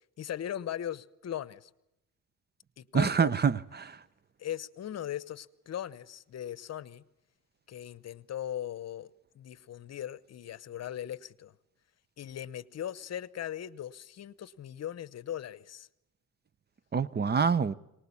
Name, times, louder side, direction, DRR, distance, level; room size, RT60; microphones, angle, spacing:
voice 1, 0.2-1.7 2.8-3.3 4.4-7.0 7.7-11.5 12.2-15.9, left 11 dB, 55° left, 1.0 m, -39 dB
voice 2, 2.9-4.0 16.9-17.7, right 6 dB, 35° right, 0.8 m, -26 dB
23.0 x 20.0 x 8.5 m
cardioid pair, 90°, 30 cm